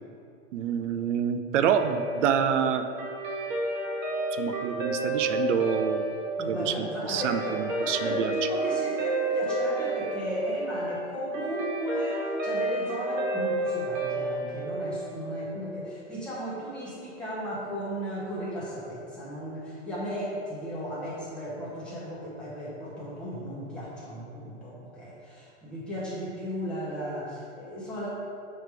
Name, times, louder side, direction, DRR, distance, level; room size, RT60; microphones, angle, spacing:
voice 1, 0.5-2.8 4.3-6.1 6.5-8.3, right 8 dB, 65° right, 8 dB, 0.5 m, -27 dB
Guitar, 1.7-16.3, right 2 dB, 90° right, 1.3 m, -31 dB
voice 2, 6.4-28.1, equal, 5° left, -10 dB, 0.7 m, -35 dB
6.8 x 3.1 x 4.7 m, 2.6 s
supercardioid pair, 175°, 39 cm